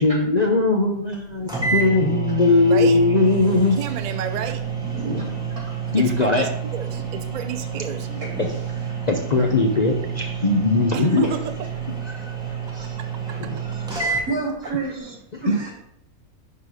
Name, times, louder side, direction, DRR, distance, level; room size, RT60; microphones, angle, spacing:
voice 1, 0.0-3.8 5.9-6.5 9.1-11.2 12.1-12.3 12.7-12.9 13.3-14.2 15.5-15.6, left 3 dB, 45° left, 2 dB, 0.6 m, -20 dB
sound 1, 1.1-1.2 1.5-14.3, right 6 dB, 5° right, 1.6 m, -29 dB
voice 2, 2.7-3.0 3.8-4.6 6.0-8.1 10.9-11.4, right 7 dB, 45° right, 7 dB, 0.6 m, -30 dB
voice 3, 4.8-5.2 5.5-5.8 8.1-8.9 11.2-11.3 13.9-15.2 15.4-15.7, right 3 dB, 90° right, -4 dB, 3.7 m, -31 dB
11.0 x 4.0 x 4.8 m, 0.74 s
omnidirectional pair, 1.6 m